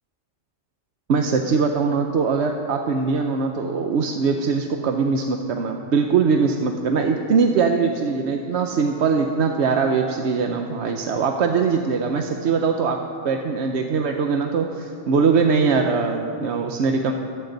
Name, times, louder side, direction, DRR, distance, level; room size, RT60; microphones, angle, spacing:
voice 1, 1.1-13.0 13.2-17.1, right 5 dB, 70° right, 4 dB, 1.0 m, -21 dB
26.5 x 8.9 x 3.9 m, 2.6 s
omnidirectional pair, 1.2 m